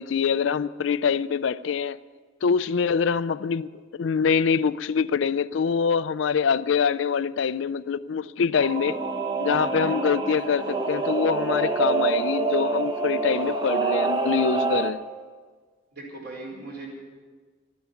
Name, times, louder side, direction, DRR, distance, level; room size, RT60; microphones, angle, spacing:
voice 1, 0.0-2.0 2.4-9.0 9.4-15.0, left 6 dB, 65° left, 0.4 m, -24 dB
Singing / Musical instrument, 8.6-14.9, right 4 dB, 20° right, 1.0 m, -26 dB
voice 2, 15.9-16.9, right 2 dB, 50° right, 4.8 m, -39 dB
13.0 x 10.5 x 9.6 m
head